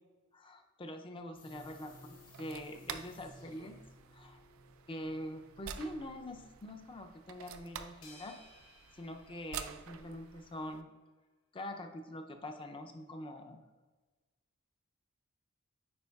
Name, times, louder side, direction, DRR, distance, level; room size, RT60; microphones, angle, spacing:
voice 1, 0.3-3.8 4.1-4.4 4.9-8.4 8.9-10.9 11.5-13.6, left 1 dB, 25° left, 5 dB, 0.5 m, -44 dB
sound 1, 1.3-8.1 8.4-8.6, equal, 40° left, 1.1 m, -59 dB
sound 2, 1.5-10.8, right 8 dB, 80° right, 0.4 m, -49 dB
sound 3, 8.0-10.5, left 2 dB, 70° left, 1.3 m, -60 dB
9.5 x 4.5 x 2.3 m, 1.3 s
head